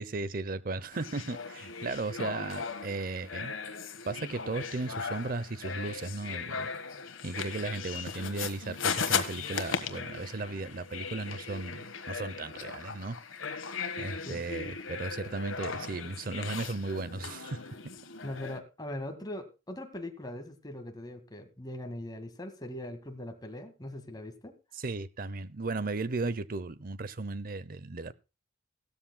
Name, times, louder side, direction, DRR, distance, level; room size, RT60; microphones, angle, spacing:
voice 1, 0.0-3.8 4.1-6.7 7.2-13.2 14.0-17.6 24.7-28.1, right 3 dB, 45° right, 0.7 m, -36 dB
sound 1, 0.9-18.6, left 6 dB, 85° left, 1.4 m, -37 dB
voice 2, 18.2-24.5, left 1 dB, 20° left, 1.9 m, -41 dB
16.5 x 13.0 x 2.2 m
head